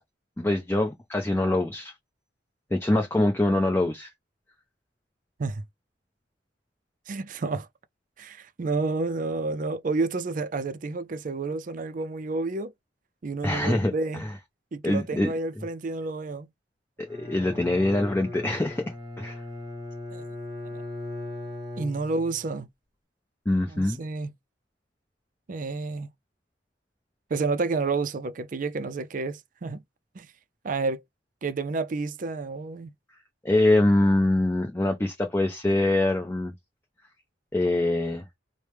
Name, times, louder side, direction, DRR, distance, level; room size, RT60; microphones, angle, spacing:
voice 1, 0.4-1.9 2.7-4.1 13.4-14.3 14.8-15.7 17.0-19.4 23.5-24.0 33.4-36.5 37.5-38.3, left 1 dB, 15° left, 0.6 m, -24 dB
voice 2, 7.1-7.7 8.2-12.7 13.2-14.2 14.7-16.5 20.1-20.3 20.7-20.8 21.8-22.7 23.7-24.3 25.5-26.1 27.3-29.8 30.1-30.3 30.6-31.0 31.4-32.9, right 3 dB, 45° right, 0.4 m, -30 dB
Bowed string instrument, 17.1-22.5, left 2 dB, 25° right, 1.1 m, -38 dB
4.6 x 2.1 x 3.3 m
head